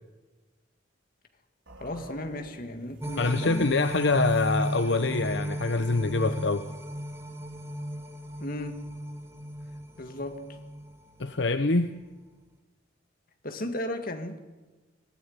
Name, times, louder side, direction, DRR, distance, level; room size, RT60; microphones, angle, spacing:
sound 1, 1.7-5.8, right 1 dB, 80° right, 4.5 m, -53 dB
voice 1, 1.8-3.7 8.4-8.8 10.0-10.5 13.4-14.4, left 1 dB, 45° left, 2.0 m, -35 dB
sound 2, 3.0-11.4 11.8-11.9, equal, 15° right, 1.7 m, -35 dB
voice 2, 3.2-6.7 11.2-11.9, left 3 dB, 65° left, 0.9 m, -25 dB
24.5 x 17.0 x 9.5 m
head